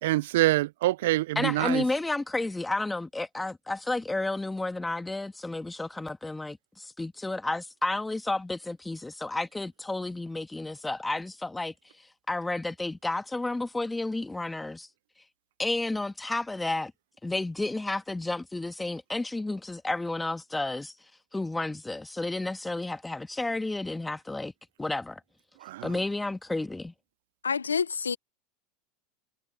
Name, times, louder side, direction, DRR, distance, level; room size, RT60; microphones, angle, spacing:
voice 1, 0.0-1.8 25.6-25.9, right 17 dB, 70° right, 0.4 m, -25 dB
voice 2, 1.4-11.7 12.3-14.9 15.6-16.9 17.2-20.9 21.3-24.5 24.8-25.2 25.8-26.9, left 2 dB, 10° left, 2.0 m, -31 dB
voice 3, 27.4-28.2, left 6 dB, 90° left, 0.7 m, -27 dB
hypercardioid pair, 80°, 0 cm